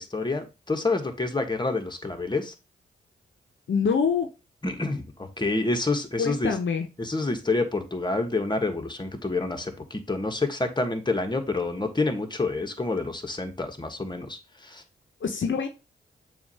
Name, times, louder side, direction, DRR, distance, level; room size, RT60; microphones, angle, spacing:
voice 1, 0.0-2.5 4.6-6.5 7.0-14.8, left 3 dB, 20° left, 5 dB, 1.4 m, -28 dB
voice 2, 3.7-4.3 6.2-6.9 15.2-15.7, left 6 dB, 65° left, 5 dB, 0.9 m, -25 dB
7.0 x 2.7 x 5.5 m, 0.27 s
cardioid pair, 45°, 21 cm